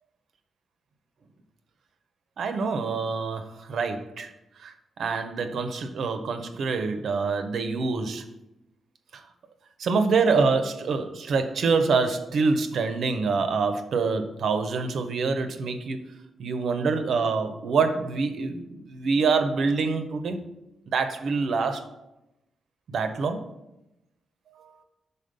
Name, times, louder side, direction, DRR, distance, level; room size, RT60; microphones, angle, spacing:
voice 1, 2.4-4.3 4.6-8.3 9.1-9.2 9.8-16.0 16.4-20.4 20.9-21.9 22.9-23.5 24.5-24.7, right 4 dB, 60° right, 8 dB, 0.5 m, -26 dB
5.1 x 4.0 x 5.3 m, 0.90 s
wide cardioid pair, 170°, 0 cm